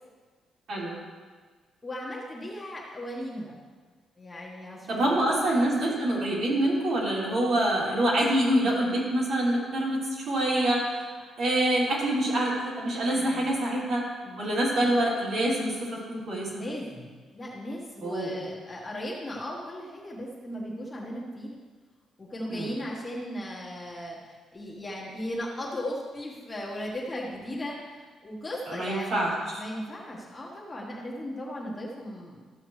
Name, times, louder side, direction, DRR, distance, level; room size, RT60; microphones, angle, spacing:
voice 1, 1.8-3.5 4.2-5.2 5.6-5.8 13.1-13.5 14.2-15.0 16.5-21.5 22.2-29.3 29.5-32.5, left 1 dB, 15° left, -4 dB, 1.3 m, -37 dB
voice 2, 4.9-10.0 10.3-11.1 11.4-14.0 14.4-16.5 18.0-18.3 22.5-22.7 28.7-29.6, right 1 dB, 55° right, -6 dB, 3.2 m, -26 dB
13.5 x 7.6 x 3.2 m, 1.5 s
cardioid pair, 175°, 0 cm